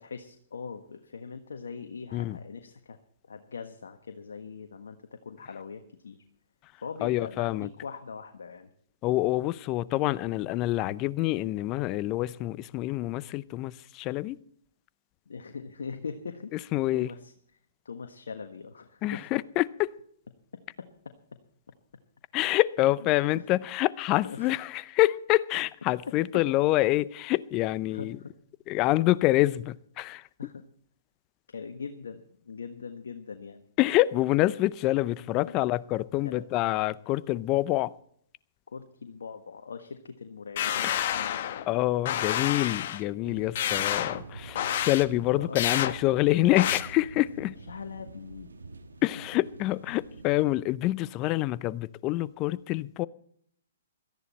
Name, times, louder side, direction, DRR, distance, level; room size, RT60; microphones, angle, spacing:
voice 1, 0.0-3.0 3.3-6.2 6.8-8.7 15.3-17.3 17.8-19.4 20.5-21.1 23.4-23.5 24.2-24.5 26.1-26.4 27.9-28.3 30.4-30.6 31.5-33.6 35.4-35.6 36.2-36.5 38.7-41.4 45.4-45.6 47.6-48.5 49.1-49.2, left 5 dB, 75° left, 1.4 m, -41 dB
voice 2, 7.0-7.7 9.0-14.4 16.7-17.1 19.0-19.9 22.3-28.2 28.7-30.2 33.8-37.9 40.8-41.1 41.7-47.5 49.0-53.1, left 17 dB, 30° left, 0.6 m, -26 dB
sound 1, 40.6-41.7 42.1-43.0 43.6-44.2 44.6-45.0 45.6-45.9 46.6-46.8, left 11 dB, 50° left, 1.1 m, -29 dB
sound 2, 43.2-50.6, right 3 dB, 80° right, 1.4 m, -46 dB
17.5 x 14.0 x 4.3 m
hypercardioid pair, 125°, 0 cm